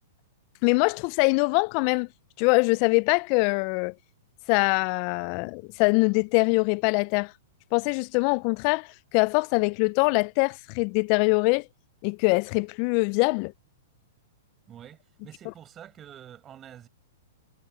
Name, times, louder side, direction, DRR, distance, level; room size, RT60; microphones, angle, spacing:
voice 1, 0.6-2.1 2.4-3.9 4.5-7.3 7.7-11.7 12.0-13.5, left 31 dB, 45° left, 0.3 m, -23 dB
voice 2, 14.7-16.9, right 10 dB, 25° right, 7.5 m, -47 dB
hypercardioid pair, 120°, 0 cm